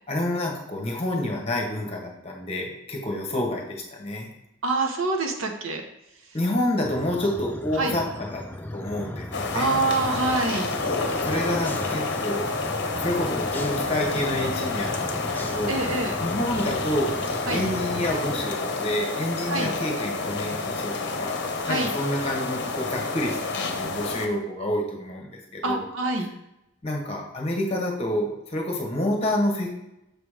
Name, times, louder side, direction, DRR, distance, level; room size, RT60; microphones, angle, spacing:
voice 1, 0.1-4.3 6.3-8.4 8.7-9.8 11.2-12.4 12.9-15.8 16.2-17.1 17.5-21.4 21.7-25.8 26.8-29.8, left 1 dB, 30° left, 0 dB, 1.1 m, -28 dB
voice 2, 4.6-5.8 7.8-7.9 9.5-10.7 15.7-16.1 17.5-17.6 19.5-19.7 21.6-21.9 25.6-26.3, right 3 dB, 80° right, 4 dB, 0.9 m, -25 dB
sound 1, 6.8-18.5, left 1 dB, 10° left, 0.3 m, -36 dB
sound 2, 9.3-24.3, left 3 dB, 55° left, 0.8 m, -29 dB
6.7 x 3.0 x 5.0 m, 0.87 s
head